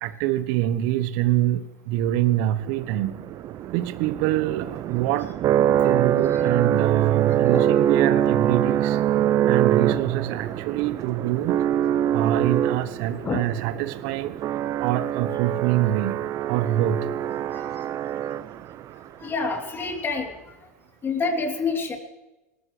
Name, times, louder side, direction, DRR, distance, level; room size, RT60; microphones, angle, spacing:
voice 1, 0.0-3.1 3.7-5.3 5.8-9.0 9.4-11.6 12.1-14.4 14.8-16.1 16.5-17.1, right 13 dB, 60° right, 13 dB, 1.1 m, -25 dB
sound 1, 2.6-18.8, right 10 dB, 40° right, 0.6 m, -24 dB
voice 2, 19.2-20.3 21.0-22.0, left 4 dB, 25° left, 2 dB, 3.3 m, -27 dB
27.0 x 13.5 x 3.3 m, 1.1 s
hypercardioid pair, 85°, 8 cm